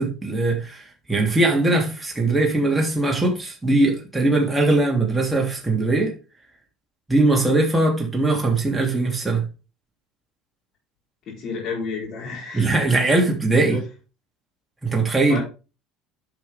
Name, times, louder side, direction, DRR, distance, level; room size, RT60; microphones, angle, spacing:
voice 1, 0.0-6.1 7.1-9.4 12.5-13.8 14.8-15.4, right 2 dB, 10° right, 3.0 m, -20 dB
voice 2, 11.3-12.7 13.6-13.8 15.3-15.4, left 4 dB, 50° left, 4.0 m, -30 dB
10.5 x 6.2 x 3.6 m
hypercardioid pair, 70°, 0 cm